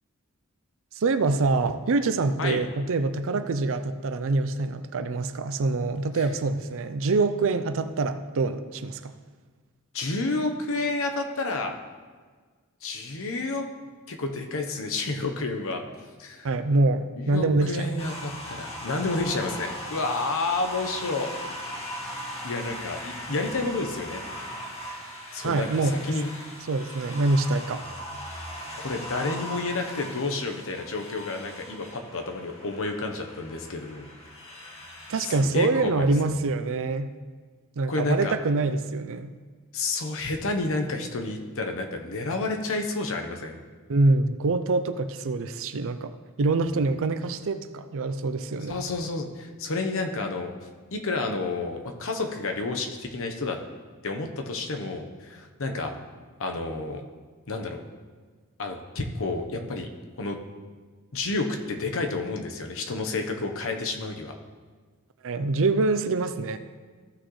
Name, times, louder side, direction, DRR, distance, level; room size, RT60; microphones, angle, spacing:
voice 1, 1.0-9.1 16.4-17.9 25.4-26.0 26.7-27.8 35.1-37.1 37.8-39.3 43.9-48.8 65.2-66.6, right 3 dB, 65° right, 10 dB, 0.5 m, -25 dB
voice 2, 9.9-11.8 12.8-13.7 14.1-15.8 16.2-16.5 17.2-21.3 21.9-22.1 22.4-24.2 25.3-26.3 28.8-34.1 35.2-36.4 37.9-38.3 39.7-43.6 48.7-50.5 50.9-53.6 54.0-55.9 56.4-57.0 57.5-57.8 58.6-59.9 60.2-60.4 61.1-64.3, left 3 dB, 65° left, 4 dB, 1.0 m, -30 dB
sound 1, 18.0-35.4, equal, 25° left, 1.6 m, -39 dB
14.5 x 6.2 x 3.2 m, 1.5 s
head